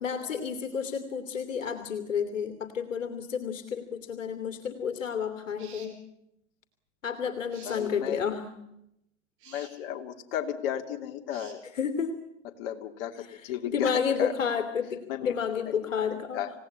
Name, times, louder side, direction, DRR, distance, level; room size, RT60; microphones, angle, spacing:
voice 1, 0.0-6.0 7.0-8.5 11.7-12.1 13.3-13.4 13.7-16.4, left 7 dB, 70° left, 6 dB, 2.8 m, -31 dB
sound 1, 5.6-6.0 7.5-7.9 9.4-9.7 11.3-11.6, right 7 dB, 30° right, 5.2 m, -50 dB
voice 2, 7.6-8.2 9.5-11.6 12.6-14.3 15.1-15.3 16.1-16.5, left 10 dB, 45° left, 4 dB, 3.0 m, -34 dB
27.0 x 17.5 x 9.9 m, 0.84 s
hypercardioid pair, 120°, 39 cm